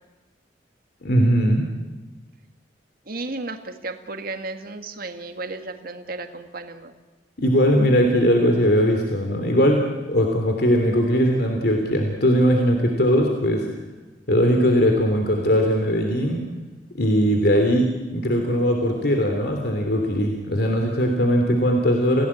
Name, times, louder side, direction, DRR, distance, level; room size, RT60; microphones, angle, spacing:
voice 1, 1.0-1.6 7.4-9.8 10.1-13.7 14.3-16.4 16.9-22.3, equal, 65° left, 3 dB, 3.1 m, -20 dB
voice 2, 3.1-7.0, right 3 dB, 55° right, 7 dB, 2.1 m, -34 dB
29.0 x 17.5 x 8.7 m, 1.2 s
head